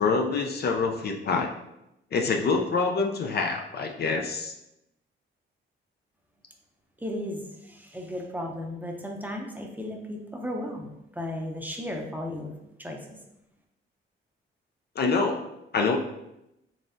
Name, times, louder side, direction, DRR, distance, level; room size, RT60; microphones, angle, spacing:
voice 1, 0.0-1.5 2.1-4.5 15.0-15.4 15.7-16.0, left 4 dB, 50° left, 3 dB, 0.4 m, -26 dB
voice 2, 7.0-12.5 12.8-13.2, left 1 dB, 10° right, 1 dB, 0.6 m, -35 dB
4.0 x 3.4 x 2.5 m, 0.86 s
cardioid pair, 80°, 21 cm